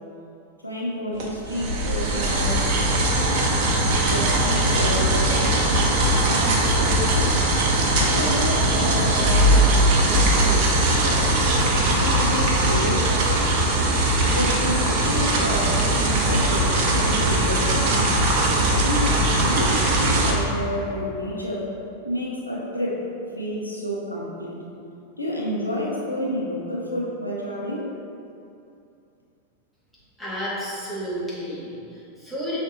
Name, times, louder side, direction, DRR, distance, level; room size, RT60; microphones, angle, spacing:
voice 1, 0.6-2.6 3.9-5.6 6.2-7.4 7.8-11.4 12.0-13.7 14.3-18.1 18.7-21.7 22.0-23.0 23.4-24.6 25.2-27.9, left 1 dB, 85° left, -4 dB, 0.6 m, -30 dB
sound 1, 1.2-20.3, right 1 dB, 45° right, 0.6 m, -20 dB
voice 2, 30.2-32.6, equal, ahead, -10 dB, 1.4 m, -31 dB
5.7 x 3.3 x 2.8 m, 2.6 s
figure-of-eight pair, 90°, 0 cm